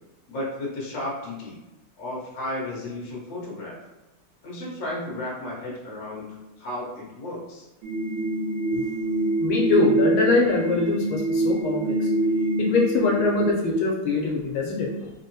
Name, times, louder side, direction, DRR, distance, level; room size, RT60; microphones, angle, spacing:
voice 1, 0.3-1.6 2.0-3.8 4.4-7.7, left 1 dB, 55° left, -4 dB, 1.1 m, -33 dB
sound 1, 7.8-13.5, right 1 dB, 75° right, 1.1 m, -25 dB
voice 2, 9.4-12.1 12.6-15.1, left 3 dB, 80° left, -1 dB, 1.4 m, -23 dB
3.7 x 2.0 x 2.6 m, 1.0 s
omnidirectional pair, 2.3 m